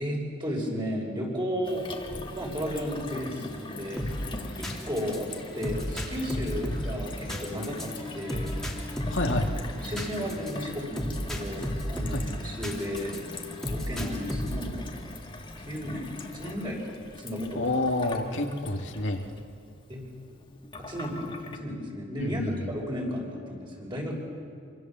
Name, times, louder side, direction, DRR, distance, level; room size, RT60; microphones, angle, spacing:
voice 1, 0.0-1.9 2.3-4.0 4.6-5.3 5.5-8.5 9.7-13.1 13.7-14.9 15.6-17.7 19.9-20.0 20.8-22.4 22.7-24.1, equal, 25° right, -1 dB, 5.9 m, -34 dB
Gurgling / Water tap faucet / Sink (filling or washing), 1.6-21.6, left 2 dB, 25° left, 1.9 m, -42 dB
sound 1, 4.0-13.2 13.6-14.7, equal, 5° left, 3.0 m, -33 dB
voice 2, 9.1-9.5 12.1-12.3 17.5-19.3 22.2-22.7, left 2 dB, 65° left, 3 dB, 2.0 m, -29 dB
26.5 x 25.5 x 7.5 m, 2.5 s
head